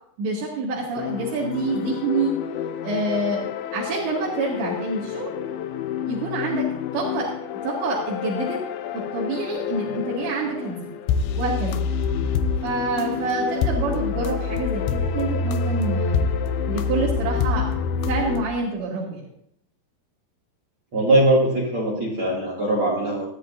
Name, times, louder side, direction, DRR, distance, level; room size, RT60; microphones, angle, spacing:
voice 1, 0.2-2.4 2.8-3.4 3.7-5.4 6.1-6.7 6.9-7.3 7.6-8.6 8.9-10.9 11.4-11.8 12.6-16.3 16.7-17.7 18.1-19.2, right 3 dB, 85° right, -6 dB, 4.5 m, -27 dB
sound 1, 1.0-18.4, left 6 dB, 80° left, 2.5 m, -27 dB
voice 2, 20.9-23.2, right 1 dB, 35° right, -3 dB, 2.8 m, -21 dB
20.0 x 13.0 x 2.7 m, 0.72 s
omnidirectional pair, 5.0 m